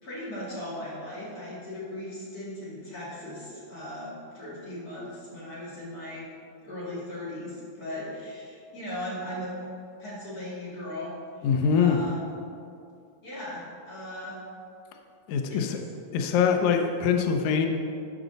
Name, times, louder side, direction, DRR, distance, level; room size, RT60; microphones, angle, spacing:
voice 1, 0.0-6.3 6.6-9.5 10.0-11.5 11.7-12.3 13.2-14.4 15.5-15.6, left 1 dB, 30° left, -8 dB, 2.1 m, -38 dB
voice 2, 11.4-12.1 15.3-15.8 16.1-17.7, left 6 dB, 85° left, 4 dB, 1.6 m, -23 dB
12.5 x 5.0 x 4.0 m, 2.4 s
omnidirectional pair, 4.2 m